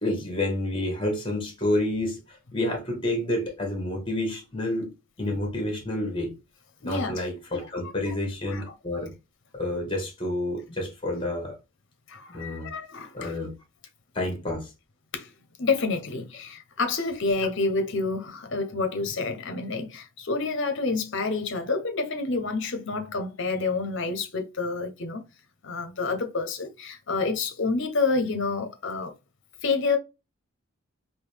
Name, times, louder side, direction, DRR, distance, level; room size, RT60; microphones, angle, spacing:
voice 1, 0.0-4.9 5.2-6.3 6.8-9.1 9.5-11.6 12.3-12.7 13.1-13.5 14.1-14.7, left 1 dB, 25° left, 1.3 m, -29 dB
voice 2, 6.8-7.2 8.5-8.6 12.1-13.3 15.1-15.3 15.6-25.2 25.6-29.1 29.6-30.0, left 3 dB, 60° left, 0.8 m, -28 dB
3.8 x 2.7 x 3.2 m
head